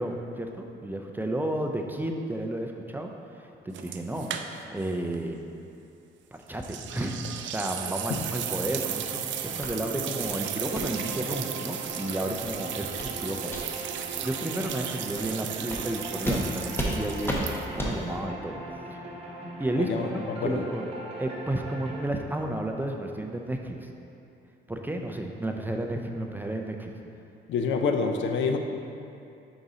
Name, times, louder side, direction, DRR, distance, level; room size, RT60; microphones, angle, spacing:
voice 1, 0.0-3.1 3.4-5.4 6.3-13.8 14.2-17.5 17.7-18.6 18.9-19.0 19.6-20.8 21.2-23.9 24.7-26.9, right 1 dB, 10° right, 2 dB, 0.4 m, -32 dB
sound 1, 3.7-4.9 5.1-5.2 6.6-17.9, right 10 dB, 70° right, 0.4 m, -35 dB
sound 2, 8.4-22.1, right 1 dB, 30° right, 1.1 m, -40 dB
sound 3, 9.6-9.7 10.1-10.3 10.7-10.9 11.3-11.4 11.8-11.9 12.3-12.5 13.0-13.1 13.5-13.6 14.1-14.2 14.6-14.8 15.2-15.3 15.7-15.8 16.2-16.4 16.7-16.9 17.2-17.4 17.8-17.9, equal, 10° left, 0.9 m, -32 dB
voice 2, 19.7-20.6 27.5-28.6, left 5 dB, 75° left, 5 dB, 0.5 m, -27 dB
5.3 x 4.0 x 4.8 m, 2.6 s
cardioid pair, 90°, 20 cm